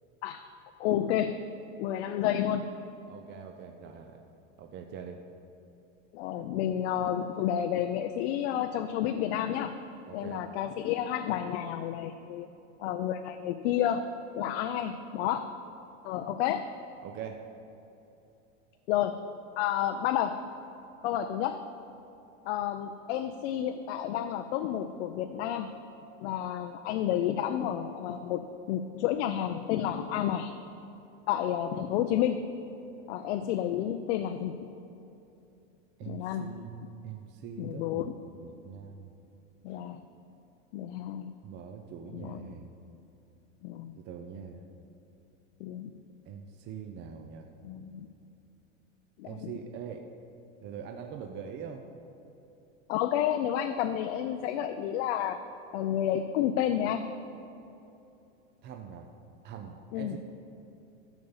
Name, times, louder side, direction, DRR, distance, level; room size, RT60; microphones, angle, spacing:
voice 1, 0.8-1.4 1.8-2.7 6.1-9.8 10.1-12.5 12.8-14.0 14.3-15.5 16.0-16.6 18.9-19.2 19.6-20.4 21.0-21.6 22.4-25.7 26.2-30.5 31.3-32.5 33.1-34.6 36.1-36.5 37.6-38.0 39.6-40.0 40.7-41.3 42.1-42.4 43.6-43.9 45.6-45.9 47.6-48.1 49.2-49.5 52.9-55.4 55.7-57.1 59.9-60.2, left 10 dB, 60° left, 8 dB, 0.6 m, -30 dB
voice 2, 3.1-4.2 4.6-5.2 10.1-10.5 17.0-17.4 36.0-36.8 37.0-39.1 41.4-42.7 44.0-44.6 46.3-47.5 49.2-50.0 50.6-51.8 58.6-59.1 59.4-60.2, right 7 dB, 30° right, 4 dB, 0.6 m, -43 dB
12.5 x 5.2 x 7.1 m, 2.8 s
supercardioid pair, 135°, 38 cm